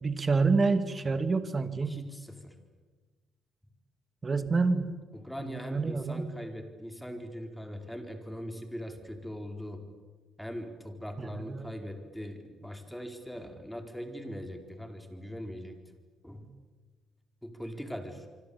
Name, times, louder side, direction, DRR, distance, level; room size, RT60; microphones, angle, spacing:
voice 1, 0.0-2.0 4.2-4.9 5.4-6.3 11.2-11.8, right 4 dB, 30° right, 10 dB, 2.3 m, -28 dB
voice 2, 1.9-2.6 5.2-9.9 10.4-15.8 16.2-16.5 17.4-18.3, equal, 5° left, 6 dB, 4.3 m, -41 dB
26.5 x 25.0 x 8.6 m, 1.4 s
cardioid pair, 100°, 0 cm